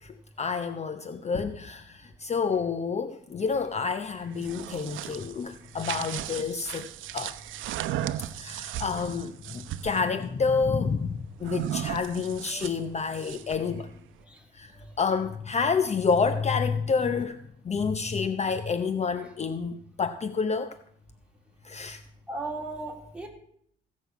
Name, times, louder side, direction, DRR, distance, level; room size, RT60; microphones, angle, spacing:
voice 1, 0.0-7.4 8.4-13.9 14.5-14.7 15.0-20.8 21.6-22.0, left 5 dB, 35° left, 0.7 m, -29 dB
sound 1, 4.2-10.0 11.4-13.7, right 11 dB, 85° right, 0.7 m, -36 dB
voice 2, 22.3-23.3, right 2 dB, 5° right, 3.2 m, -35 dB
16.5 x 6.3 x 8.2 m
cardioid pair, 90°, 20 cm